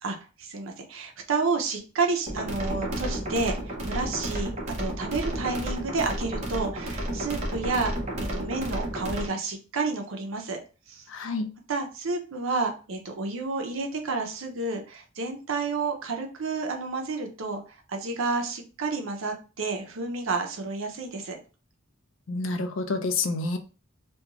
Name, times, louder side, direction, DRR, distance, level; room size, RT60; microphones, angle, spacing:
voice 1, 0.0-4.5 4.8-7.9 8.2-10.6 10.9-11.0 11.7-21.4, right 3 dB, 70° right, 4 dB, 0.6 m, -30 dB
sound 1, 2.3-9.3, right 1 dB, 35° right, 0.6 m, -32 dB
voice 2, 11.1-11.5 22.3-23.6, left 3 dB, 65° left, 6 dB, 0.4 m, -28 dB
2.4 x 2.2 x 2.9 m, 0.34 s
head